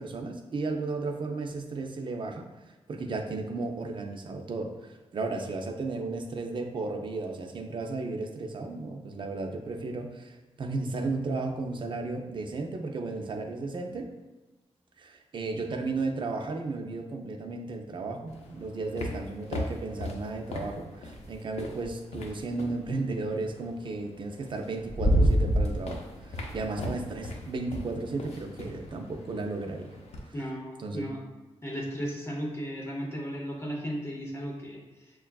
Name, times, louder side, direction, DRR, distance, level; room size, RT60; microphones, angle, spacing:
voice 1, 0.0-2.5 2.9-14.1 15.0-30.0 30.8-31.1, right 3 dB, 50° right, 3 dB, 0.4 m, -34 dB
sound 1, 18.3-22.8 24.1-24.2 24.6-30.3, equal, 90° left, 0.5 m, -31 dB
voice 2, 30.3-31.2 31.6-34.8, equal, 25° left, -3 dB, 0.6 m, -35 dB
6.4 x 2.3 x 2.2 m, 1.2 s
wide cardioid pair, 155°, 11 cm